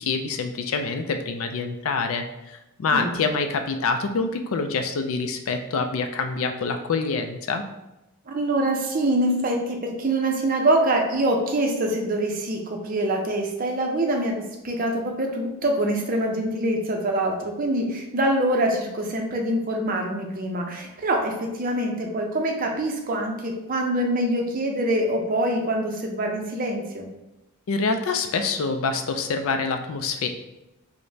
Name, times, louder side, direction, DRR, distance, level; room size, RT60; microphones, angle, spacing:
voice 1, 0.0-7.6 27.7-30.3, left 4 dB, 65° left, 6 dB, 0.4 m, -26 dB
voice 2, 8.3-27.1, right 1 dB, 40° right, 2 dB, 0.5 m, -25 dB
4.8 x 2.1 x 2.7 m, 0.95 s
head